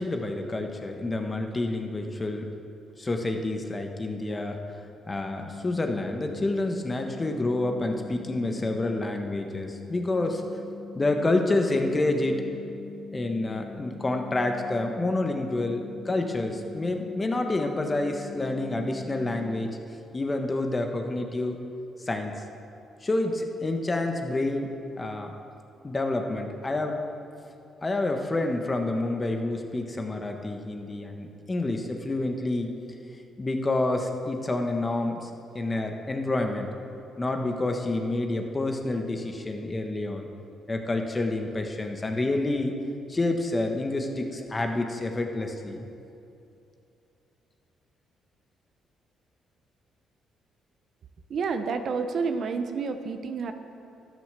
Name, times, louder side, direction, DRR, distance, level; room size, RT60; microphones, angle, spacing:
voice 1, 0.0-2.5 3.0-4.6 5.1-10.4 10.9-12.4 13.1-19.8 20.1-21.6 22.0-22.4 23.0-24.7 25.0-25.3 25.8-27.0 27.8-32.8 33.4-35.3 35.5-36.7 37.2-40.3 40.7-42.7 43.1-45.9, left 2 dB, 25° left, 4 dB, 1.3 m, -28 dB
sound 1, 5.1-19.7, left 5 dB, 85° left, 1.6 m, -43 dB
voice 2, 51.3-53.5, right 5 dB, 55° right, 8 dB, 0.9 m, -29 dB
12.5 x 9.0 x 6.8 m, 2.7 s
cardioid pair, 90°, 0 cm